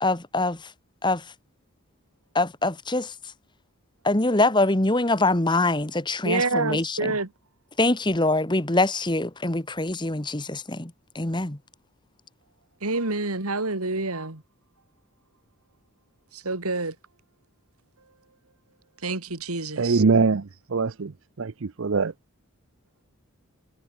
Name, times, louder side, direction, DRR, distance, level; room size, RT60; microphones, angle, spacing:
voice 1, 0.0-0.7 1.0-1.2 2.3-3.1 4.0-7.1 7.8-11.6, left 2 dB, 20° left, 1.4 m, -24 dB
voice 2, 6.2-7.3 12.8-14.4 16.3-16.9 19.0-20.0, right 3 dB, 90° right, 3.1 m, -27 dB
voice 3, 19.8-20.4 20.7-21.1 21.4-21.5 21.8-22.1, right 4 dB, 65° right, 0.6 m, -21 dB
head